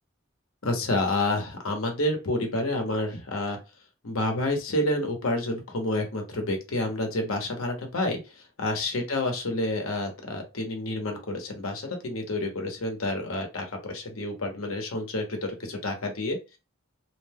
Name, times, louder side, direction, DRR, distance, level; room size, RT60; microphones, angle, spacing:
voice 1, 0.6-3.6 4.0-16.6, left 1 dB, 75° left, 3 dB, 0.9 m, -29 dB
2.5 x 2.2 x 3.4 m, 0.29 s
head